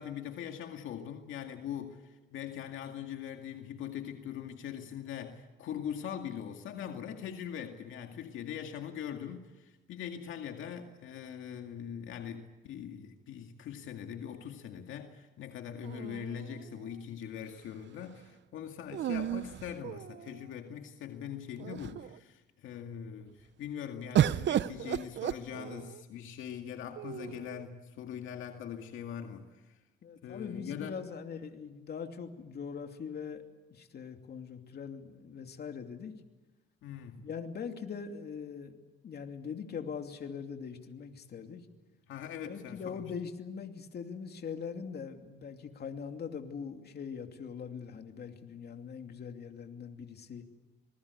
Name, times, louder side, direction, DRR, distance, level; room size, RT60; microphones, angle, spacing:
voice 1, 0.0-29.8 30.2-30.9 36.8-37.3 42.1-43.1, left 9 dB, 85° left, 4 dB, 2.1 m, -42 dB
sound 1, 15.8-16.9 18.9-20.4 21.2-21.3 21.6-22.2 24.1-26.0 27.0-27.6, right 10 dB, 65° right, 0.8 m, -33 dB
voice 2, 30.0-33.4 33.7-36.1 37.2-38.8 39.0-41.6 42.5-50.4, left 6 dB, 55° left, 5 dB, 2.8 m, -42 dB
26.0 x 21.0 x 8.3 m, 1.1 s
cardioid pair, 90°, 20 cm